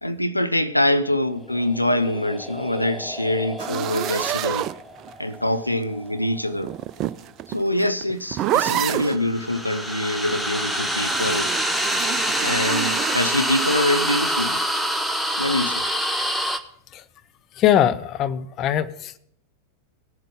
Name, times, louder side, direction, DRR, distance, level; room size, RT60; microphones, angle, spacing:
voice 1, 0.0-4.7 5.2-6.7 7.5-11.5 12.4-14.6 15.4-15.9, left 1 dB, 85° left, 0.6 m, -24 dB
sound 1, 1.4-6.6 9.1-16.6, equal, ahead, 1.0 m, -27 dB
sound 2, 3.6-5.4 6.6-9.2 11.0-13.2, right 12 dB, 35° right, 0.5 m, -28 dB
voice 2, 17.6-18.9, left 10 dB, 35° left, 0.6 m, -20 dB
19.0 x 7.7 x 3.7 m
figure-of-eight pair, 90°, 0 cm